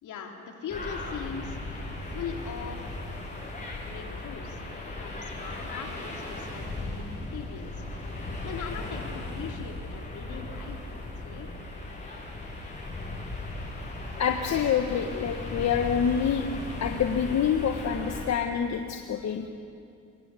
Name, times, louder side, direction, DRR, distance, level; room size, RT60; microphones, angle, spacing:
voice 1, 0.0-1.6 2.0-3.0 3.8-4.6 4.9-7.9 8.4-11.5, left 6 dB, 80° left, 2 dB, 3.6 m, -40 dB
sound 1, 0.7-18.3, left 2 dB, 25° left, 7.9 m, -37 dB
voice 2, 14.2-19.5, left 7 dB, 60° left, 4 dB, 1.5 m, -27 dB
23.0 x 22.5 x 8.5 m, 2.4 s
cardioid pair, 90°, 30 cm